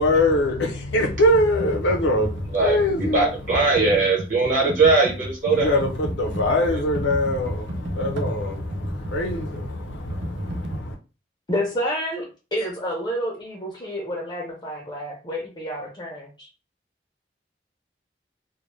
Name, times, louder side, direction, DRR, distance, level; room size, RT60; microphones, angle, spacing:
voice 1, 0.0-3.3 5.5-11.0, left 1 dB, 85° left, 0.6 m, -23 dB
Computer keyboard, 1.3-10.8, equal, 90° right, 0.6 m, -33 dB
voice 2, 2.5-5.8, right 3 dB, 45° right, 1.0 m, -20 dB
voice 3, 11.5-16.5, equal, 25° left, 0.5 m, -29 dB
2.2 x 2.0 x 3.0 m
head